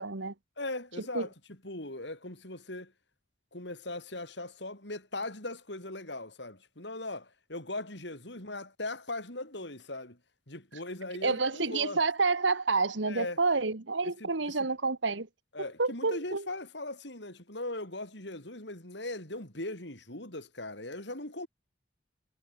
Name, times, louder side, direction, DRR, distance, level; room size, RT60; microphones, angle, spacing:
voice 1, 0.0-0.3 1.0-1.3 11.2-15.3 15.6-16.5, right 4 dB, 80° right, 1.6 m, -29 dB
voice 2, 0.6-1.3 1.6-2.9 3.5-10.2 10.5-12.0 13.1-13.4 14.2-14.5 15.5-21.5, left 2 dB, 70° left, 6.4 m, -39 dB
head